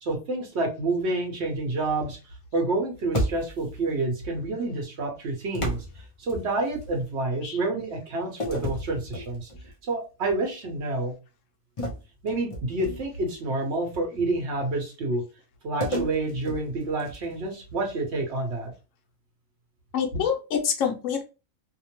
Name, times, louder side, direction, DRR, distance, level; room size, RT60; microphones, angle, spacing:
voice 1, 0.0-2.2 2.5-5.8 6.2-9.5 9.8-11.1 12.2-15.2 15.6-18.7, right 2 dB, 60° right, 2 dB, 1.1 m, -28 dB
sound 1, 3.1-3.8 5.5-6.9 8.4-9.7 10.2-10.4 11.8-13.3 15.8-17.4, equal, 35° left, 0.5 m, -32 dB
voice 2, 19.9-21.2, left 7 dB, 80° left, 3 dB, 1.0 m, -26 dB
2.8 x 2.0 x 2.9 m, 0.31 s
omnidirectional pair, 1.3 m